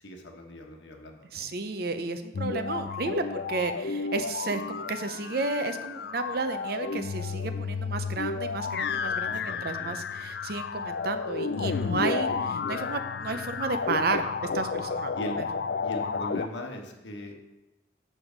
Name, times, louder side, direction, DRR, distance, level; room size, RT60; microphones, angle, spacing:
voice 1, 0.0-1.5 9.3-10.2 15.1-15.4 15.8-17.4, equal, 85° left, 3 dB, 1.3 m, -40 dB
voice 2, 1.3-15.1, right 3 dB, 55° right, 8 dB, 0.7 m, -32 dB
sound 1, 2.3-16.5, left 5 dB, 60° left, 0.4 m, -32 dB
7.6 x 6.2 x 5.1 m, 1.0 s
head